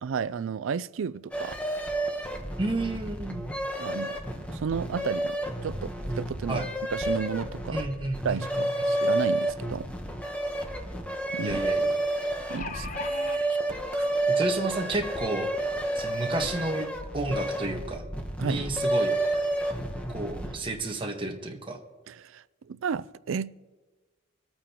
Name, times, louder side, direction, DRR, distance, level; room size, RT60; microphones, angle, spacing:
voice 1, 0.0-1.6 3.8-6.6 6.9-7.8 8.2-9.9 11.3-11.6 12.5-14.1 18.4-18.6 22.1-23.5, right 6 dB, 75° right, 0.4 m, -33 dB
sound 1, 1.3-20.7, right 1 dB, 5° left, 1.0 m, -30 dB
voice 2, 2.6-3.4 6.5-6.7 7.7-8.6 11.4-12.0 14.4-15.5 15.9-16.9 17.1-18.0 18.4-19.1 20.1-21.8, right 2 dB, 25° right, 1.3 m, -31 dB
sound 2, 12.2-13.4 14.3-14.4 14.8-14.9, left 4 dB, 40° left, 0.5 m, -38 dB
24.5 x 8.9 x 2.9 m
head